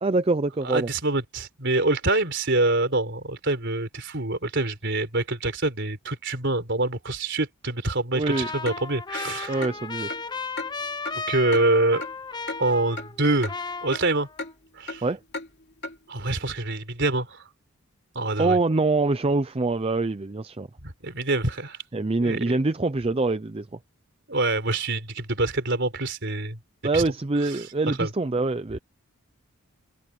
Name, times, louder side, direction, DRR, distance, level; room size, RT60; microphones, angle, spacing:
voice 1, 0.0-0.9 8.1-8.5 9.5-10.1 15.0-15.2 18.4-20.7 21.9-23.8 26.8-28.8, right 3 dB, 25° right, 0.5 m, -24 dB
voice 2, 0.6-9.7 11.3-12.0 12.6-13.5 13.8-14.3 14.8-15.0 16.1-17.4 18.1-18.6 20.8-21.8 22.2-22.6 24.3-26.6 26.9-27.0 27.9-28.1, right 2 dB, 50° right, 4.1 m, -25 dB
Trumpet, 8.3-13.2 13.5-14.5, left 4 dB, 20° left, 0.8 m, -35 dB
Clock, 8.7-8.8 9.1-9.2 9.6-9.7 10.1-10.2 10.6-10.7 11.0-11.2 11.5-11.6 12.0-12.1 12.5-12.6 13.0-13.1 13.4-13.5 13.9-14.0 14.4-14.5 14.9-15.0 15.3-15.5 15.8-15.9, left 2 dB, 50° left, 3.1 m, -34 dB
head